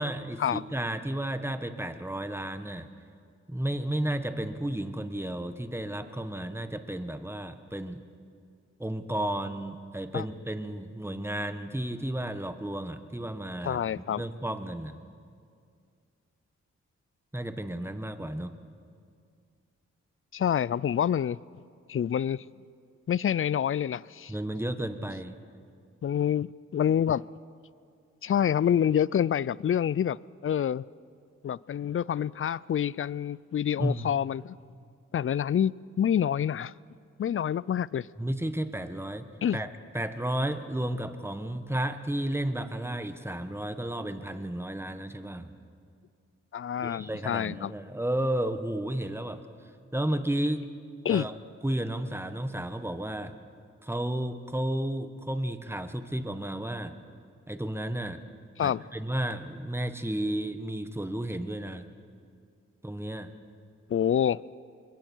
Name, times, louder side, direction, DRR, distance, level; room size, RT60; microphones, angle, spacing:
voice 1, 0.0-2.9 3.5-8.0 8.8-15.0 17.3-18.5 24.3-25.3 33.8-34.1 38.2-39.3 39.5-39.7 39.9-45.5 46.8-49.4 49.9-50.6 51.1-51.3 51.6-53.3 53.8-56.9 57.5-58.2 58.6-61.9 62.8-63.3, right 1 dB, 10° right, 1.4 m, -32 dB
voice 2, 13.6-14.2 20.3-21.4 21.9-22.5 23.1-24.3 26.0-27.2 28.2-30.8 31.4-34.6 35.1-36.7 37.2-38.1 39.4-39.6 46.5-47.7 51.0-51.3 58.6-58.8 63.9-64.4, left 9 dB, 45° left, 0.4 m, -27 dB
25.5 x 22.0 x 4.6 m
cardioid pair, 45°, 31 cm